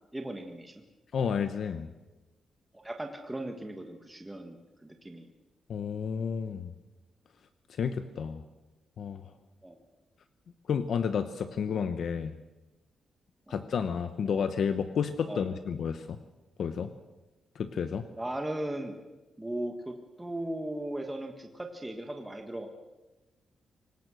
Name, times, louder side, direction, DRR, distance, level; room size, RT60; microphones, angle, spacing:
voice 1, 0.1-0.7 2.7-5.3 9.6-9.8 13.5-13.6 15.3-15.4 18.1-18.9 19.4-22.7, right 1 dB, 10° right, 4 dB, 1.5 m, -37 dB
voice 2, 1.1-1.9 5.7-6.7 7.7-8.4 9.0-9.2 10.7-12.3 13.5-16.2 16.6-16.9 17.5-18.1, left 6 dB, 55° left, 10 dB, 1.0 m, -31 dB
24.5 x 18.5 x 6.3 m, 1.1 s
wide cardioid pair, 165°, 0 cm